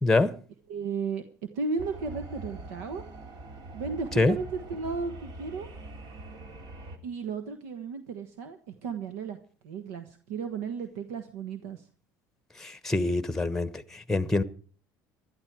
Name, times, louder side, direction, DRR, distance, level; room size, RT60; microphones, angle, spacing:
voice 1, 0.0-0.3 4.2-4.4 12.6-14.4, left 2 dB, 5° left, 1.1 m, -25 dB
voice 2, 0.7-1.2 1.5-3.0 3.7-5.7 7.0-9.4 9.6-11.8, right 5 dB, 90° right, 1.3 m, -34 dB
sound 1, 1.8-7.0, right 2 dB, 55° right, 3.0 m, -43 dB
19.5 x 12.5 x 4.7 m
supercardioid pair, 100°, 8 cm